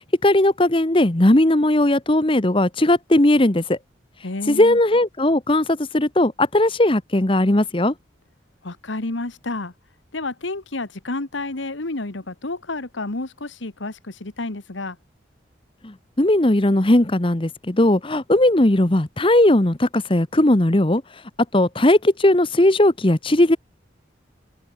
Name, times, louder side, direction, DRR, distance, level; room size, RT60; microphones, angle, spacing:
voice 1, 0.2-3.8 4.5-7.9 15.8-21.0 21.5-23.6, left 1 dB, 25° left, 1.1 m, -18 dB
voice 2, 4.2-4.8 8.6-9.7 10.1-15.0, left 2 dB, 80° left, 1.6 m, -30 dB
head